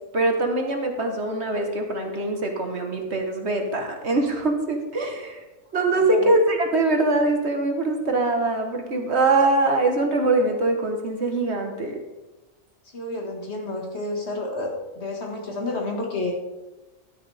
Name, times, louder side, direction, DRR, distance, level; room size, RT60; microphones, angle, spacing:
voice 1, 0.1-5.4 5.7-12.0, right 2 dB, 55° right, 3 dB, 1.5 m, -23 dB
voice 2, 5.9-6.3 12.9-16.3, left 2 dB, 50° left, 1 dB, 2.0 m, -30 dB
12.0 x 9.8 x 3.4 m, 1.1 s
omnidirectional pair, 1.4 m